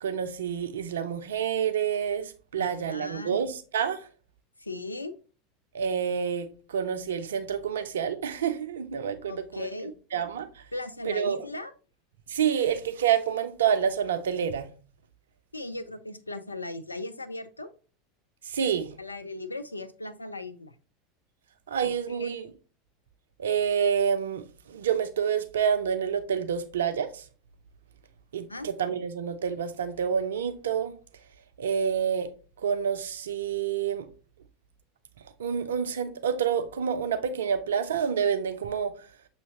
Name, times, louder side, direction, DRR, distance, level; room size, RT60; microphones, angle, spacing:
voice 1, 0.0-4.1 5.7-9.7 10.1-10.6 11.1-11.4 12.3-14.7 18.4-18.9 21.7-22.4 23.4-27.2 28.3-31.0 31.6-32.3 32.6-34.1 35.4-38.9, right 7 dB, 65° right, 0.4 m, -28 dB
voice 2, 2.6-3.4 4.6-5.1 9.3-9.9 10.7-11.7 15.5-17.7 19.0-20.7 21.8-22.3 28.5-28.7, left 2 dB, 85° left, 0.3 m, -37 dB
6.4 x 2.8 x 2.8 m
figure-of-eight pair, 80°, 0 cm